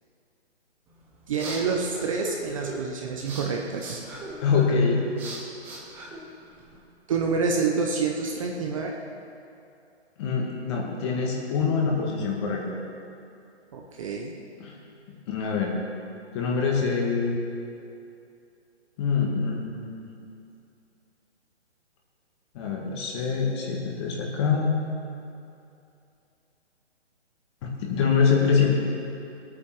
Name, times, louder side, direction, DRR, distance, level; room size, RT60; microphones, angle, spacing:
sound 1, 0.9-6.8, right 1 dB, 5° right, 0.7 m, -39 dB
voice 1, 1.3-4.0 7.1-8.9 13.7-14.3, right 4 dB, 30° right, 1 dB, 0.9 m, -27 dB
voice 2, 4.4-5.0 10.2-12.8 14.6-14.8 15.1-15.7 16.3-17.4 19.0-20.1 22.5-24.8 27.6-28.7, left 5 dB, 25° left, -1 dB, 1.9 m, -25 dB
18.0 x 8.9 x 6.2 m, 2.6 s
hypercardioid pair, 155°, 35 cm